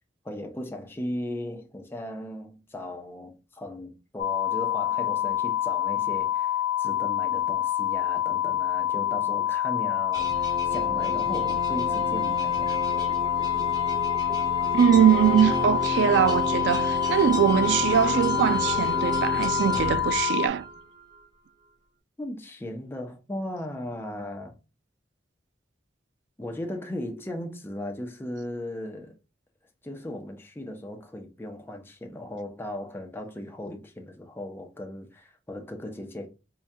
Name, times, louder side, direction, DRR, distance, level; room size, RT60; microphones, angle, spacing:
voice 1, 0.2-12.8 22.2-24.6 26.4-29.1 29.8-36.3, left 1 dB, 15° left, 0.5 m, -37 dB
sound 1, 4.2-20.5, left 12 dB, 70° left, 0.4 m, -27 dB
sound 2, 10.1-20.8, right 2 dB, 20° right, 0.8 m, -32 dB
voice 2, 14.7-20.6, right 8 dB, 80° right, 0.3 m, -22 dB
4.5 x 2.2 x 2.6 m
head